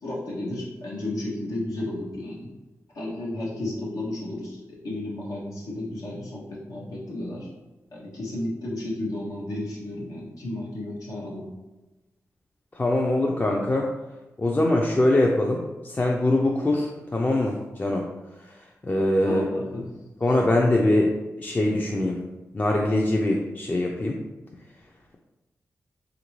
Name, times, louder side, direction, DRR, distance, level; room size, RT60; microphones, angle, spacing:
voice 1, 0.0-2.5 2.9-7.5 7.9-11.4 19.2-19.8, left 1 dB, 85° left, -5 dB, 0.8 m, -33 dB
voice 2, 12.7-13.9 14.4-18.1 18.4-19.5 20.2-21.1 21.4-22.2 22.5-24.2, left 1 dB, 30° left, -1 dB, 0.4 m, -23 dB
3.1 x 2.5 x 3.0 m, 1.1 s
cardioid pair, 60°, 6 cm